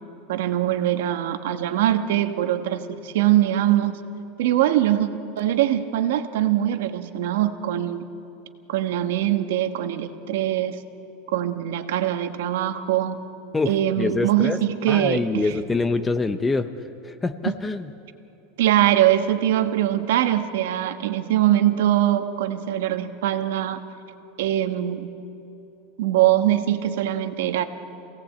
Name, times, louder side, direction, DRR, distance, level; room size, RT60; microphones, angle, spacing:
voice 1, 0.3-4.0 4.4-5.1 5.4-8.0 8.7-10.8 11.3-13.2 13.7-15.5 17.4-17.5 18.6-23.8 24.4-25.1 26.0-27.6, right 12 dB, 80° right, 8 dB, 1.3 m, -22 dB
voice 2, 13.5-14.6 14.9-16.7 17.1-17.9, left 3 dB, 10° left, 10 dB, 0.7 m, -25 dB
26.5 x 17.5 x 8.5 m, 2.9 s
supercardioid pair, 165°, 0 cm